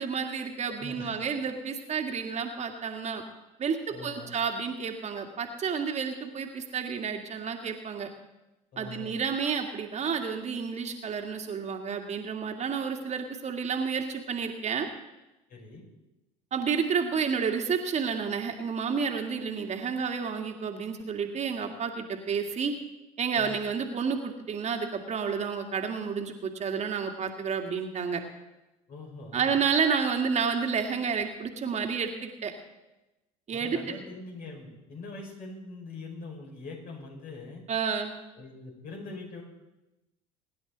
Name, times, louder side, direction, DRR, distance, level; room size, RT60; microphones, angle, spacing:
voice 1, 0.0-3.2 3.6-8.1 8.8-14.9 16.5-22.7 23.2-28.2 29.3-32.5 33.5-34.0 37.7-38.1, right 6 dB, 40° right, 4 dB, 1.9 m, -30 dB
voice 2, 0.6-1.1 3.9-4.3 8.7-9.2 15.5-15.8 23.3-23.6 28.9-29.6 33.5-37.6 38.4-39.4, left 3 dB, 55° left, -1 dB, 5.4 m, -43 dB
23.5 x 10.5 x 4.0 m, 1.0 s
hypercardioid pair, 70°, 18 cm